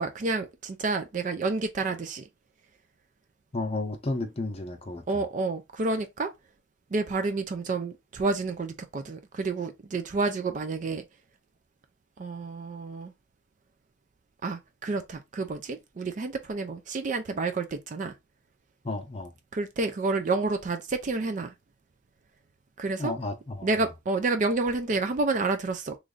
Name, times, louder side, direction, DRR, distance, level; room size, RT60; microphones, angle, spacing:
voice 1, 0.0-2.2 5.1-6.3 6.9-11.0 12.2-13.1 14.4-18.1 19.5-21.5 22.8-23.1 23.6-26.0, right 3 dB, 40° right, 0.4 m, -29 dB
voice 2, 3.5-5.0 18.8-19.3 23.0-23.7, left 2 dB, 30° left, 0.6 m, -32 dB
3.1 x 2.5 x 3.7 m
head